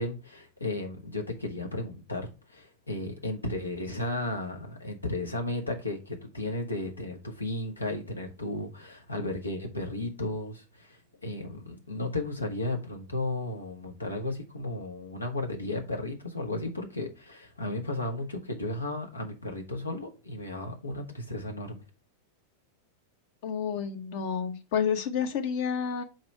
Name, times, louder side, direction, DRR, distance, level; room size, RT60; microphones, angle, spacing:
voice 1, 0.0-21.8, left 2 dB, 80° left, 1.3 m, -34 dB
voice 2, 23.4-26.0, left 7 dB, 50° left, 1.1 m, -30 dB
5.4 x 4.6 x 4.7 m
figure-of-eight pair, 90°, 0 cm